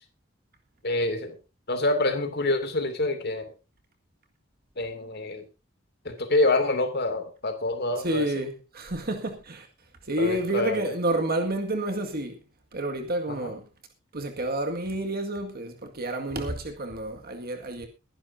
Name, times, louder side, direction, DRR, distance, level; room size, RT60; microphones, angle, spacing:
voice 1, 0.8-1.4 1.7-3.4 4.8-5.4 6.0-8.3 10.2-10.8 13.3-13.5, left 2 dB, 55° left, 2.6 m, -26 dB
voice 2, 8.0-9.7 10.0-12.4 12.7-13.6 14.1-17.9, right 1 dB, 50° right, 2.0 m, -29 dB
22.0 x 10.5 x 2.7 m
head